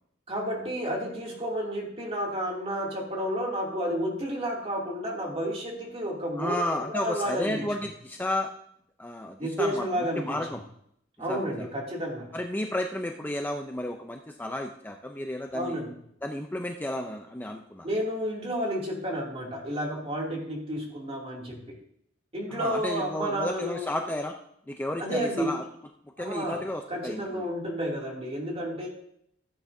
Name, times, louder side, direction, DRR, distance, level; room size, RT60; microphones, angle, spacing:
voice 1, 0.3-7.6 9.4-10.4 11.2-12.3 15.5-15.9 17.8-21.8 22.3-23.9 25.0-25.5 26.2-26.6 26.9-28.9, equal, 30° right, -2 dB, 2.6 m, -31 dB
voice 2, 6.4-8.5 9.0-10.6 11.3-11.7 12.3-15.8 16.2-17.9 22.5-24.4 24.7-25.6 26.2-27.5, left 1 dB, 10° left, 3 dB, 0.5 m, -32 dB
15.0 x 8.7 x 2.7 m, 0.70 s
head